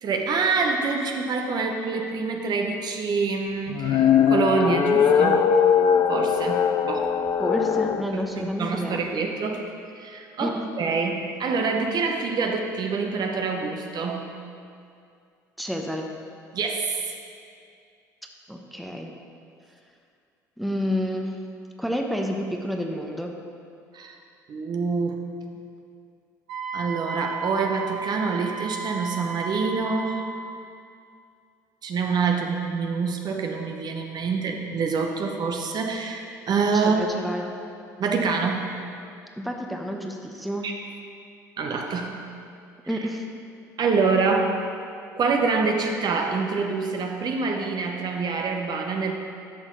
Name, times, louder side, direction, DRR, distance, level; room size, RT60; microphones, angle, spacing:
voice 1, 0.0-5.4 6.1-7.1 8.1-9.6 9.9-14.2 16.5-17.1 23.9-24.2 24.5-25.2 26.7-30.2 31.8-37.0 38.0-38.6 40.6-40.7 41.6-42.1 42.9-43.0 43.8-44.6 45.2-49.1, right 4 dB, 45° right, 3 dB, 0.9 m, -26 dB
sound 1, 3.7-8.1, left 7 dB, 45° left, 0.5 m, -20 dB
voice 2, 7.4-9.0 10.4-10.7 15.6-16.1 18.5-19.1 20.6-21.4 21.8-23.3 36.7-37.5 39.4-40.7 42.9-43.2, equal, ahead, 2 dB, 0.9 m, -29 dB
Wind instrument woodwind instrument, 26.5-30.6, right 4 dB, 70° right, 1.2 m, -34 dB
11.0 x 6.3 x 3.8 m, 2.4 s
hypercardioid pair, 60°, 10 cm